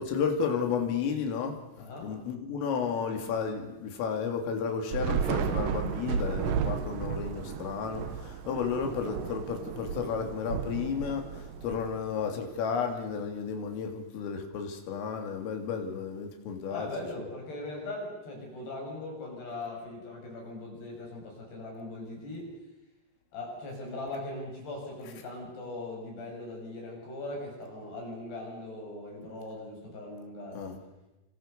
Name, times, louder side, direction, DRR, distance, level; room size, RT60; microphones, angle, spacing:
voice 1, 0.0-1.5 2.0-16.9 30.5-30.8, left 6 dB, 75° left, 4 dB, 5.5 m, -32 dB
voice 2, 1.8-2.2 16.7-22.5 23.3-30.7, left 2 dB, 55° left, 0 dB, 8.7 m, -40 dB
Thunder / Rain, 4.9-12.4, right 7 dB, 75° right, 2.1 m, -33 dB
30.0 x 25.5 x 6.9 m, 1.0 s
omnidirectional pair, 5.9 m